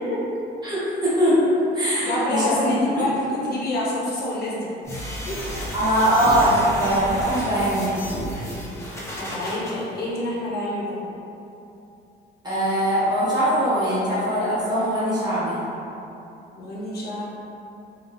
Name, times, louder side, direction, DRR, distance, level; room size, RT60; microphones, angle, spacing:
voice 1, 0.6-3.1 5.7-8.1 12.4-15.6, equal, 20° right, -11 dB, 1.2 m, -21 dB
voice 2, 2.0-4.7 5.3-5.7 9.1-11.0 16.6-17.2, left 1 dB, 60° left, -5 dB, 0.7 m, -27 dB
sound 1, 4.8-9.7, equal, 15° left, 0.6 m, -32 dB
3.8 x 2.4 x 2.5 m, 2.8 s
cardioid pair, 120°, 18 cm